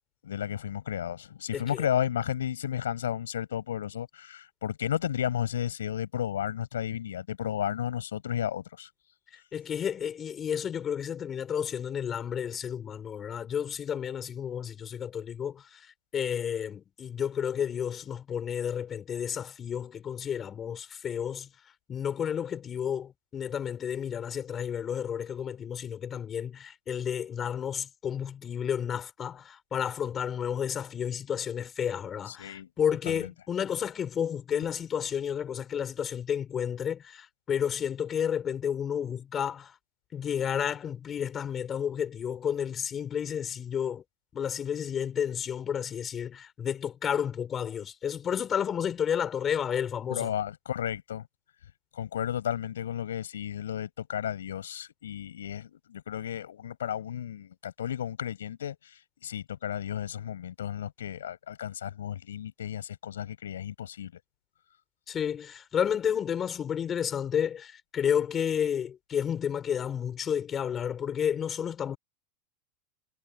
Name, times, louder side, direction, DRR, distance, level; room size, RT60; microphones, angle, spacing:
voice 1, 0.2-8.9 32.3-32.7 33.1-33.3 50.1-51.3 51.9-64.1, left 10 dB, 90° left, 6.4 m, -33 dB
voice 2, 1.5-1.8 9.5-21.5 21.9-39.8 40.1-44.0 44.3-50.3 65.1-72.0, left 8 dB, 30° left, 4.0 m, -31 dB
hypercardioid pair, 105°, 0 cm